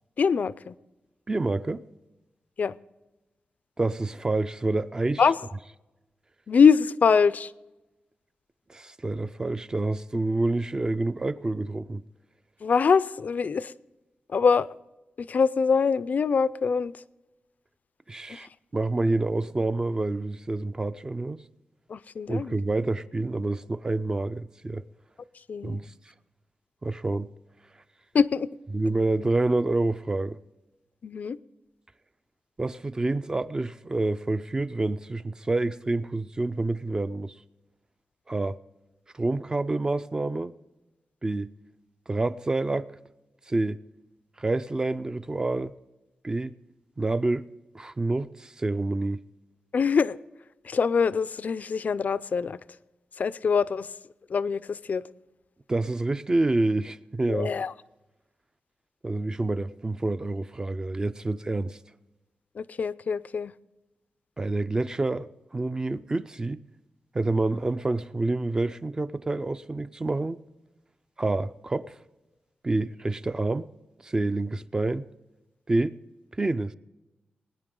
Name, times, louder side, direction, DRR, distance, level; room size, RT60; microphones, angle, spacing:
voice 1, 0.2-0.7 2.6-2.8 5.2-5.4 6.5-7.5 12.6-13.7 14.3-14.7 15.2-16.9 21.9-22.6 25.5-25.8 28.1-28.5 31.0-31.4 49.7-50.2 50.6-52.6 53.2-53.9 54.3-55.0 57.3-57.7 62.6-63.5, left 5 dB, 50° left, 0.4 m, -23 dB
voice 2, 1.3-1.8 3.8-5.2 8.7-12.0 18.1-21.4 22.3-24.8 25.6-25.9 26.8-27.3 28.7-30.4 32.6-37.4 38.3-38.6 39.1-40.5 41.2-41.5 42.1-42.9 43.5-43.8 44.4-45.7 46.2-46.5 47.0-47.5 47.7-49.2 55.7-57.5 59.0-61.8 64.4-66.6 67.1-70.4 71.2-72.0 72.6-73.7 74.0-75.1 75.7-76.0 76.3-76.7, right 2 dB, 20° right, 0.4 m, -28 dB
21.0 x 9.9 x 3.8 m
wide cardioid pair, 160°, 3 cm